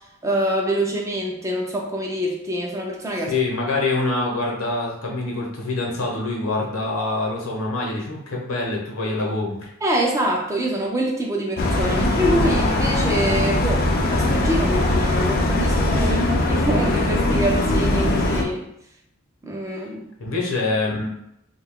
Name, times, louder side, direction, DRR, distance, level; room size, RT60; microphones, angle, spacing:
voice 1, 0.2-3.3 9.8-18.6 19.4-20.0, right 1 dB, 15° right, -1 dB, 0.4 m, -25 dB
voice 2, 3.3-9.7 20.2-21.1, left 2 dB, 70° left, -2 dB, 0.8 m, -25 dB
sound 1, 11.6-18.4, left 1 dB, 45° left, 0.4 m, -20 dB
2.7 x 2.3 x 3.5 m, 0.77 s
head